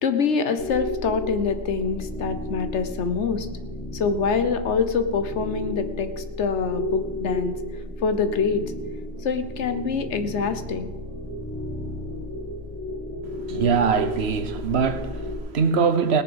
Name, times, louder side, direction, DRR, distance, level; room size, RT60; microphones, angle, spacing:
voice 1, 0.0-3.5 3.9-7.6 8.0-8.6 9.2-10.9, left 5 dB, 85° left, 1.3 m, -25 dB
sound 1, 0.6-15.4, left 1 dB, 25° left, 2.1 m, -33 dB
voice 2, 13.5-16.2, right 6 dB, 70° right, 1.2 m, -22 dB
18.0 x 7.1 x 7.0 m
omnidirectional pair, 1.1 m